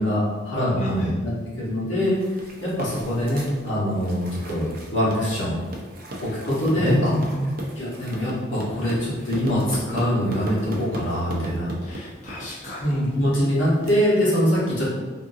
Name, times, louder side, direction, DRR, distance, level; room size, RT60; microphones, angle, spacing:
voice 1, 0.0-2.1 2.6-4.7 4.9-5.6 6.2-7.1 7.8-11.7 12.8-14.9, equal, 80° left, -7 dB, 1.2 m, -23 dB
voice 2, 0.8-1.1 6.8-7.5 11.8-13.0, equal, 35° left, -8 dB, 0.5 m, -28 dB
sound 1, 2.0-13.9, right 1 dB, 45° right, 0.5 m, -37 dB
3.5 x 2.6 x 2.6 m, 1.3 s
head